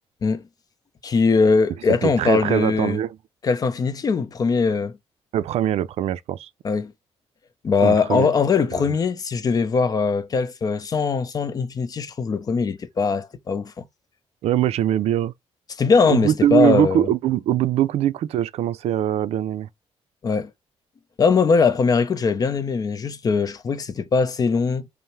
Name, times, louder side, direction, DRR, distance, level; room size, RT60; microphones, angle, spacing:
voice 1, 1.0-3.0 3.4-4.9 6.6-6.9 7.6-13.9 15.8-17.1 20.2-20.5 21.2-24.9, left 5 dB, 35° left, 0.6 m, -21 dB
voice 2, 1.9-3.2 5.3-6.5 7.8-8.3 14.4-15.3 16.0-19.7, right 11 dB, 80° right, 0.4 m, -22 dB
5.4 x 2.0 x 3.1 m
cardioid pair, 140°, 11 cm